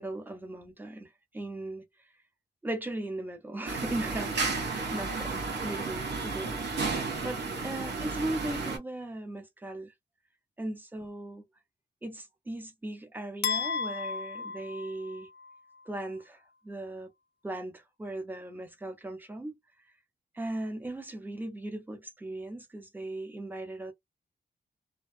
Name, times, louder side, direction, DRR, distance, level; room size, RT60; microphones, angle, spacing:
voice 1, 0.0-1.8 2.6-9.9 10.6-11.4 12.0-15.3 15.9-17.1 17.4-19.6 20.3-23.9, right 1 dB, 10° right, 0.6 m, -38 dB
sound 1, 3.7-8.8, right 4 dB, 85° right, 1.1 m, -33 dB
sound 2, 13.4-15.6, left 6 dB, 85° left, 0.4 m, -34 dB
2.5 x 2.3 x 2.4 m
wide cardioid pair, 160°, 18 cm